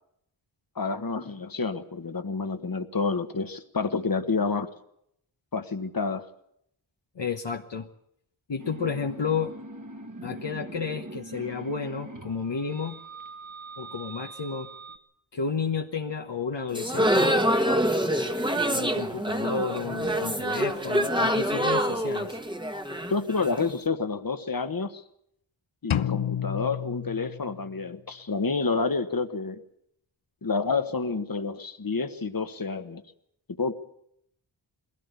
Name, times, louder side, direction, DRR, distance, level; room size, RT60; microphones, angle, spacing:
voice 1, 0.7-4.7 5.5-6.2 23.1-25.0 25.8-29.6 30.4-33.0 33.6-33.7, left 4 dB, 45° left, 9 dB, 1.4 m, -29 dB
voice 2, 7.2-7.9 8.5-9.5 10.2-13.0 13.8-14.7 15.3-17.3 18.1-18.5 18.7-22.4, left 5 dB, 60° left, 3 dB, 1.2 m, -32 dB
sound 1, 8.6-15.0, right 2 dB, 40° right, 1.8 m, -42 dB
sound 2, 16.7-23.7, equal, 10° right, 1.3 m, -26 dB
sound 3, 25.9-27.9, left 9 dB, 85° left, 0.7 m, -30 dB
22.0 x 16.5 x 8.3 m, 0.75 s
wide cardioid pair, 55°, 47 cm